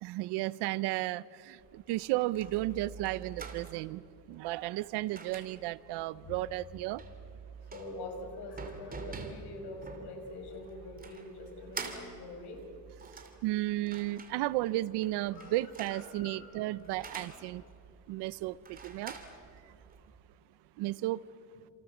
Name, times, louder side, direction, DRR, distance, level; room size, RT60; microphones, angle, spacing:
voice 1, 0.0-4.0 4.3-7.0 13.4-17.6 18.1-19.2 20.8-21.2, right 17 dB, 85° right, 0.9 m, -33 dB
sound 1, 1.6-20.2, right 4 dB, 20° right, 3.0 m, -48 dB
voice 2, 7.7-12.6 15.3-15.6 15.9-16.7 21.5-21.7, left 2 dB, 75° left, 6.2 m, -45 dB
29.5 x 27.5 x 7.4 m
cardioid pair, 145°, 39 cm